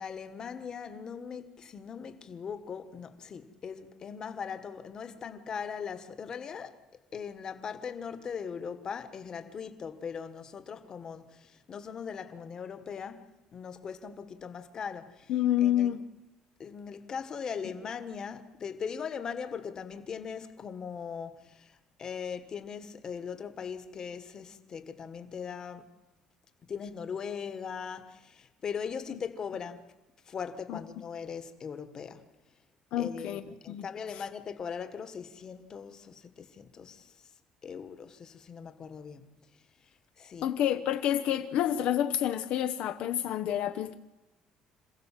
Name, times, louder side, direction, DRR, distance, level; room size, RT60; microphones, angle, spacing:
voice 1, 0.0-6.8 7.1-15.3 15.6-15.9 16.6-25.9 26.7-29.8 30.3-32.2 33.0-37.1 37.6-39.2 40.2-40.5, left 6 dB, 30° left, 1.6 m, -40 dB
voice 2, 15.3-16.0 29.1-29.2 30.7-30.8 32.9-33.9 34.1-34.2 40.4-43.9, left 11 dB, 60° left, 1.0 m, -29 dB
27.0 x 16.5 x 7.5 m
cardioid pair, 160°, 2 cm